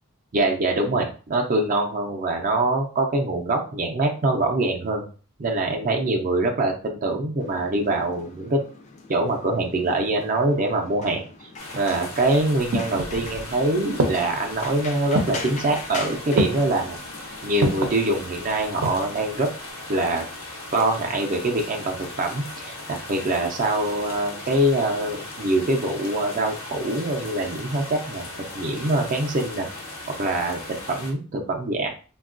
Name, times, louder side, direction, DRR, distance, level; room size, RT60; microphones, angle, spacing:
voice 1, 0.3-5.1 5.4-8.6 9.1-11.2 11.7-17.0 17.4-19.5 19.9-20.2 20.7-28.3 28.5-29.7 30.2-31.9, right 2 dB, 40° right, 2 dB, 0.4 m, -24 dB
sound 1, 7.4-17.4, left 3 dB, 35° left, 0.4 m, -41 dB
sound 2, 11.6-31.1, left 2 dB, 85° left, 0.9 m, -38 dB
sound 3, 12.7-13.5 14.0-14.5 15.1-15.6 16.4-16.8 17.6-18.0 18.6-19.2 19.4-19.5, right 1 dB, 90° right, 0.6 m, -26 dB
3.5 x 2.3 x 2.5 m, 0.38 s
head